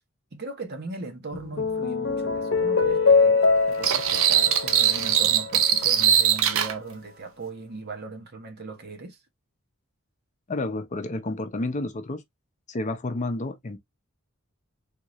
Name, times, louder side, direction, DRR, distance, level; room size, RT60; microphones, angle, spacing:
voice 1, 0.3-9.2, right 3 dB, 50° right, 1.0 m, -38 dB
sound 1, 1.3-5.9, left 4 dB, 65° left, 0.8 m, -23 dB
sound 2, 3.8-6.7, right 9 dB, 75° right, 0.6 m, -21 dB
voice 2, 10.5-12.2 12.7-13.8, left 2 dB, 35° left, 0.6 m, -30 dB
3.6 x 2.5 x 3.0 m
head